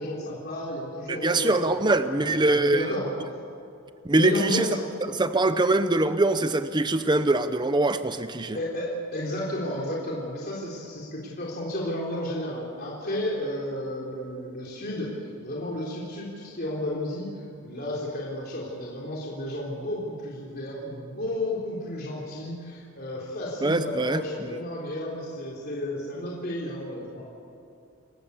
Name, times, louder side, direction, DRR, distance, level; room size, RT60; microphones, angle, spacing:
voice 1, 0.0-3.1 4.1-4.9 8.5-15.1 15.4-27.2, left 1 dB, 45° left, -4 dB, 3.6 m, -32 dB
voice 2, 1.1-2.9 4.0-4.7 5.1-8.6 23.6-24.2 24.5-24.6, right 2 dB, 20° right, 10 dB, 0.7 m, -23 dB
28.5 x 15.0 x 8.4 m, 2.6 s
head